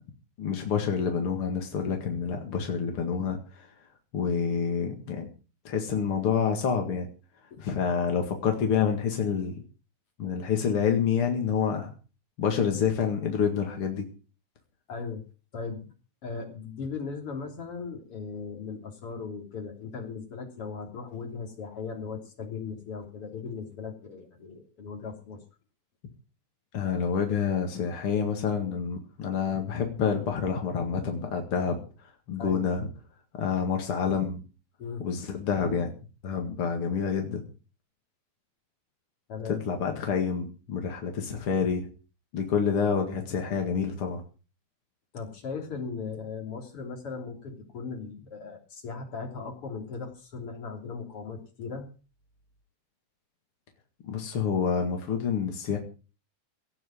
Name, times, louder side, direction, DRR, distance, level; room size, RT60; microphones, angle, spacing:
voice 1, 0.4-3.7 4.1-5.3 5.6-7.1 7.6-9.5 10.2-11.9 12.4-14.0 26.7-32.9 33.4-34.4 35.0-35.9 36.2-37.4 39.7-41.9 42.3-44.2 54.0-55.8, left 6 dB, 50° left, 3 dB, 1.7 m, -28 dB
voice 2, 14.9-15.2 15.5-15.9 16.2-25.4 32.4-32.6 34.8-35.0 39.3-39.6 45.1-51.9, left 5 dB, 35° left, 3 dB, 3.5 m, -38 dB
17.5 x 6.2 x 9.3 m, 0.36 s
omnidirectional pair, 5.4 m